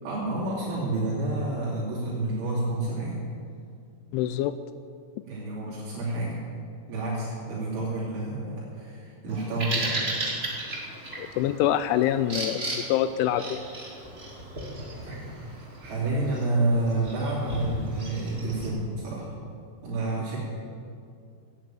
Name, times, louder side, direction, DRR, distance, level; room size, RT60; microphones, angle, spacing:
voice 1, 0.0-3.2 5.2-6.4 6.9-10.0 15.0-19.3 19.8-20.4, right 2 dB, 70° right, -8 dB, 5.2 m, -29 dB
voice 2, 4.1-4.5 11.2-13.6, left 11 dB, 85° left, 12 dB, 2.8 m, -25 dB
Bird vocalization bird call bird song, 9.3-18.7, right 1 dB, 45° right, 0.7 m, -35 dB
16.5 x 9.0 x 8.9 m, 2.4 s
omnidirectional pair, 5.8 m